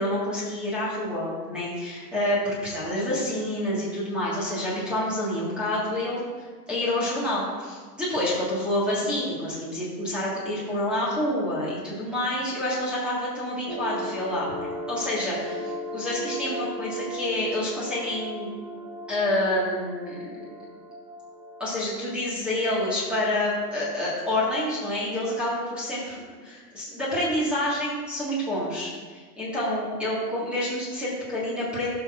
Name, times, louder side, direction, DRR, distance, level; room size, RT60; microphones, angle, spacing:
voice 1, 0.0-6.2 6.7-14.5 14.9-18.5 19.1-20.4 21.6-31.9, left 1 dB, ahead, -8 dB, 1.6 m, -28 dB
sound 1, 13.7-23.5, equal, 30° right, 0.4 m, -37 dB
17.0 x 6.1 x 2.5 m, 1.5 s
supercardioid pair, 170°, 47 cm